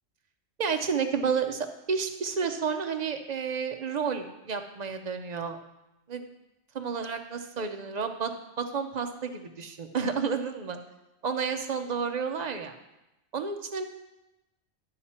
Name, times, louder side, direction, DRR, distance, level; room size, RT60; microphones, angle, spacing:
voice 1, 0.6-5.6 6.1-6.2 6.7-10.8 11.2-12.7 13.3-13.8, right 6 dB, 45° right, 6 dB, 0.6 m, -31 dB
11.5 x 5.8 x 4.3 m, 0.95 s
omnidirectional pair, 1.3 m